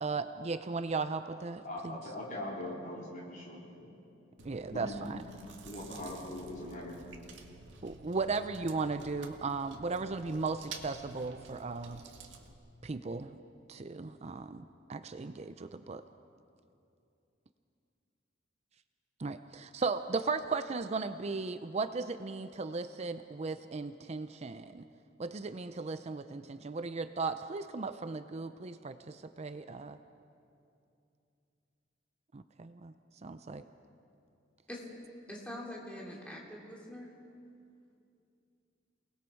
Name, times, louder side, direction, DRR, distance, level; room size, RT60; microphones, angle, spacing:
voice 1, 0.0-1.6 4.5-5.2 7.8-12.0 12.8-13.3 13.7-14.6 14.9-16.0 19.2-24.8 25.2-30.0 32.3-32.9 33.2-33.6, right 4 dB, 35° right, 10 dB, 0.5 m, -36 dB
voice 2, 1.6-3.9 4.7-5.2 5.6-7.0, left 1 dB, 45° left, -4 dB, 4.4 m, -41 dB
Chewing mastication, 4.4-12.5, right 4 dB, 90° right, 1.8 m, -51 dB
voice 3, 35.3-37.1, left 1 dB, 5° left, -3 dB, 3.2 m, -44 dB
28.5 x 19.5 x 4.6 m, 2.6 s
head